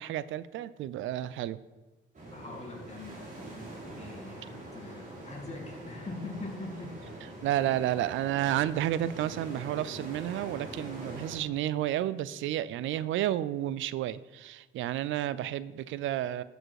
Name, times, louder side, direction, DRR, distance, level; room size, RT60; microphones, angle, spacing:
voice 1, 0.0-1.6 7.4-16.4, right 12 dB, 80° right, 17 dB, 0.4 m, -31 dB
sound 1, 2.1-11.4, right 1 dB, 40° right, 3.2 m, -44 dB
voice 2, 2.3-3.3 4.0-7.0, left 2 dB, 35° left, 1 dB, 2.2 m, -42 dB
12.0 x 5.2 x 4.7 m, 1.2 s
cardioid pair, 90°, 20 cm